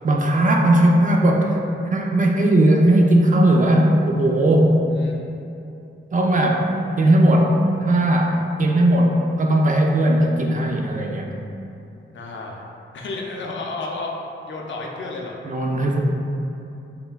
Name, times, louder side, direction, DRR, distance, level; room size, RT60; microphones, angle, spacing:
voice 1, 0.0-1.6 1.9-4.7 6.1-6.6 7.0-11.3 15.5-16.0, right 1 dB, 40° right, 1 dB, 0.4 m, -17 dB
voice 2, 5.0-5.4 12.1-12.7 12.9-15.4, left 3 dB, 70° left, -1 dB, 0.5 m, -32 dB
5.5 x 2.2 x 2.2 m, 2.8 s
wide cardioid pair, 90°, 20 cm